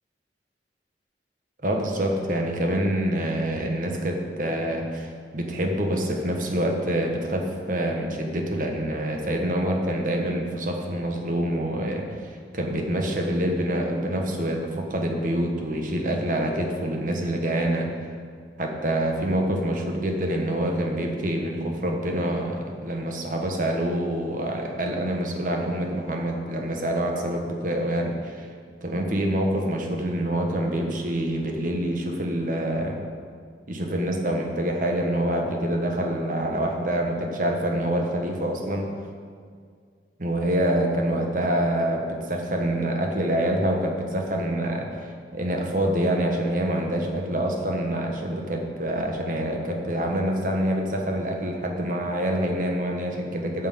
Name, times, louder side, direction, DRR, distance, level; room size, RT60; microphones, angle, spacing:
voice 1, 1.6-17.9 18.6-28.5 28.8-33.0 33.7-38.9 40.2-53.7, right 1 dB, 50° right, 2 dB, 1.3 m, -26 dB
8.9 x 6.4 x 7.6 m, 2.1 s
head